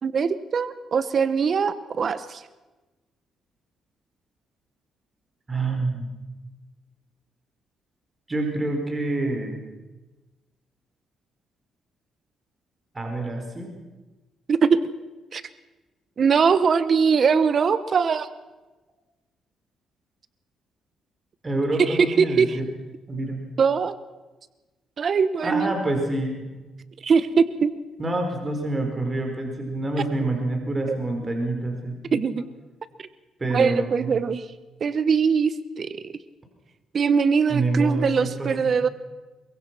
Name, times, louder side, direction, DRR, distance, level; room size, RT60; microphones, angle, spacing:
voice 1, 0.0-2.4 14.5-14.8 15.3-15.4 16.2-18.3 21.9-22.6 23.6-23.9 25.0-25.7 27.0-27.7 30.9-31.0 32.1-32.4 33.5-34.4 34.8-36.1 36.9-38.9, right 6 dB, 50° right, 13 dB, 1.1 m, -21 dB
voice 2, 5.5-6.1 8.3-9.6 12.9-13.7 21.4-22.7 23.1-23.4 25.4-26.5 28.0-32.2 33.4-34.2 37.5-38.7, right 2 dB, 25° right, 3 dB, 4.7 m, -27 dB
23.0 x 22.5 x 6.1 m, 1.2 s
cardioid pair, 90°, 0 cm